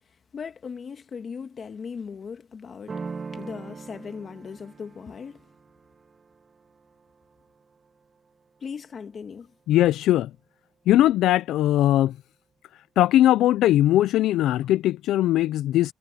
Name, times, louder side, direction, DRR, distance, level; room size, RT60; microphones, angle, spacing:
voice 1, 0.3-5.5 8.6-9.5, left 6 dB, 40° left, 1.7 m, -38 dB
sound 1, 2.9-8.4, right 4 dB, 30° right, 2.1 m, -42 dB
voice 2, 9.7-10.3 10.9-12.2 13.0-15.9, left 13 dB, 80° left, 0.4 m, -20 dB
cardioid pair, 115°, 0 cm